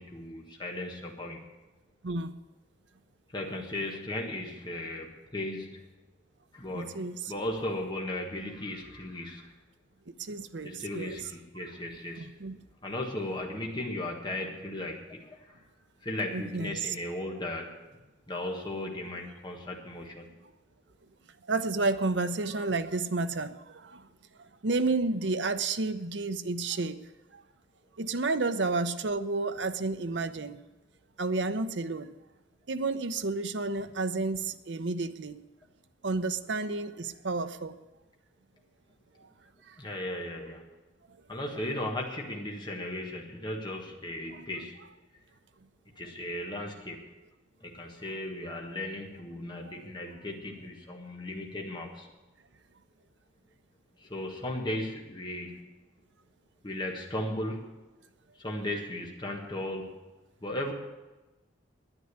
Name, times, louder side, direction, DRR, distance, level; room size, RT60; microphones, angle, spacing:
voice 1, 0.0-1.4 3.3-5.9 6.5-7.0 7.3-9.5 10.6-12.3 12.8-15.6 16.0-17.7 18.3-20.2 39.8-40.6 41.3-44.8 46.0-47.0 47.6-52.1 54.0-55.7 56.6-57.7 58.4-59.9 60.4-60.7, left 1 dB, 25° left, 0 dB, 1.5 m, -36 dB
voice 2, 6.7-7.3 10.2-11.2 12.2-12.6 16.3-16.9 21.5-24.1 24.6-27.0 27.3-27.4 28.0-30.6 31.2-32.1 32.7-35.4 36.0-37.8 39.6-39.8 41.1-41.2 44.3-44.5, right 3 dB, 70° right, 10 dB, 0.7 m, -31 dB
10.0 x 9.9 x 9.6 m, 1.1 s
head